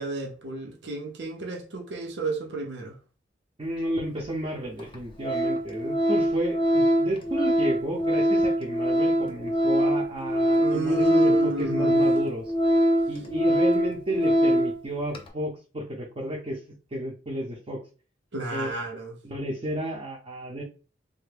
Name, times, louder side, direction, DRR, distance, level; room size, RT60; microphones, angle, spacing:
voice 1, 0.0-3.0 10.6-12.0 18.3-19.1, right 2 dB, 70° right, 0.6 m, -32 dB
voice 2, 3.6-12.5 13.1-16.6 16.9-17.8 18.5-18.7 19.2-20.6, equal, 30° right, 0.5 m, -32 dB
Organ, 4.2-4.3 4.8-5.0 5.2-14.8 15.1-15.3, equal, 30° left, 0.6 m, -23 dB
3.3 x 2.0 x 3.3 m
head